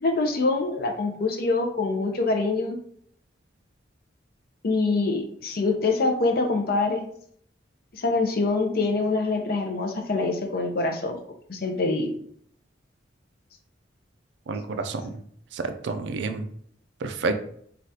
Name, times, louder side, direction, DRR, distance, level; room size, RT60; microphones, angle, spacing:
voice 1, 0.0-2.8 4.6-7.0 7.9-11.2 11.5-12.1, left 3 dB, 55° left, 4 dB, 0.5 m, -25 dB
voice 2, 14.5-15.2 15.5-16.5 17.0-17.3, right 3 dB, 70° right, 8 dB, 0.4 m, -29 dB
3.3 x 2.4 x 2.7 m, 0.62 s
head